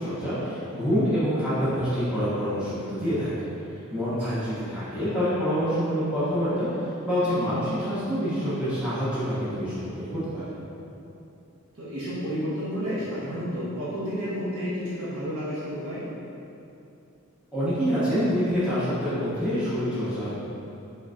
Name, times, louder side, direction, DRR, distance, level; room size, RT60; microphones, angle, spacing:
voice 1, 0.0-3.4 3.9-10.5 17.5-20.3, equal, 5° right, -14 dB, 1.2 m, -26 dB
voice 2, 11.8-16.0, equal, 80° right, -12 dB, 1.4 m, -31 dB
4.6 x 4.0 x 2.5 m, 2.7 s
head